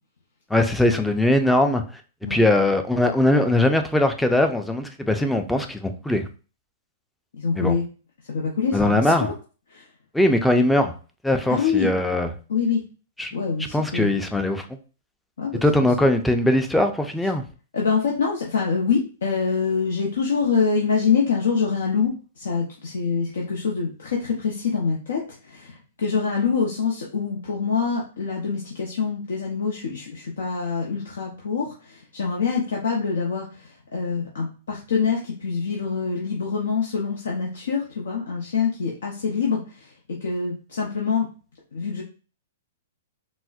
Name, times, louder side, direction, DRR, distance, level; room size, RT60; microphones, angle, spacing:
voice 1, 0.5-1.8 2.3-6.2 7.6-7.7 8.7-9.3 10.1-10.9 11.2-12.3 13.2-13.3 13.7-14.7 15.6-17.4, left 1 dB, 5° left, 0.4 m, -20 dB
voice 2, 7.3-7.9 8.3-9.3 9.7-9.9 11.5-11.9 12.5-12.8 13.3-14.1 15.4-15.6 16.0-16.1 17.7-41.3 41.7-42.0, left 5 dB, 80° left, 0.7 m, -25 dB
4.0 x 2.1 x 2.4 m
hypercardioid pair, 125°, 0 cm